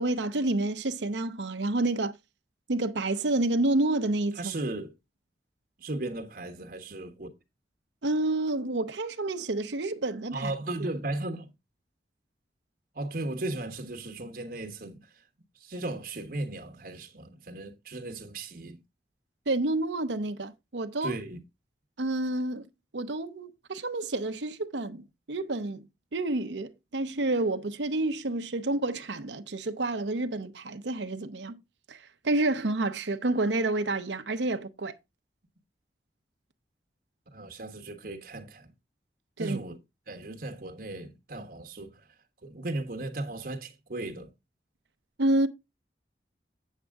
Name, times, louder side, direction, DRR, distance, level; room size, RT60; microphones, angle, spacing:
voice 1, 0.0-2.1 2.7-4.6 8.0-10.5 19.5-21.1 22.0-22.6 22.9-25.9 26.1-31.6 31.9-34.9 39.4-39.6 45.2-45.5, right 2 dB, 85° right, 0.8 m, -29 dB
voice 2, 4.4-4.9 5.8-7.3 10.3-11.5 12.9-15.1 15.6-18.8 21.0-21.4 37.3-38.7 39.4-39.8 40.1-42.0 42.4-44.3, right 2 dB, 55° right, 1.1 m, -36 dB
8.2 x 7.5 x 3.5 m
head